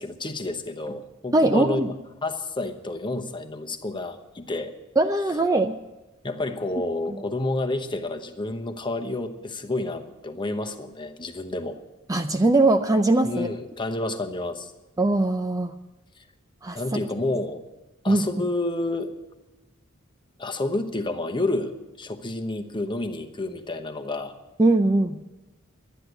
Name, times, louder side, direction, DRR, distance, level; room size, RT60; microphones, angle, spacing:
voice 1, 0.0-1.9 2.2-4.7 6.2-11.8 13.2-14.7 16.2-16.3 16.7-17.6 18.0-19.1 20.4-24.4, left 2 dB, 25° left, 5 dB, 1.0 m, -30 dB
voice 2, 1.3-1.9 5.0-5.8 12.1-13.5 15.0-15.7 16.6-16.8 18.1-18.3 24.6-25.2, right 2 dB, 15° right, 7 dB, 0.5 m, -21 dB
12.5 x 10.0 x 7.9 m, 1.1 s
head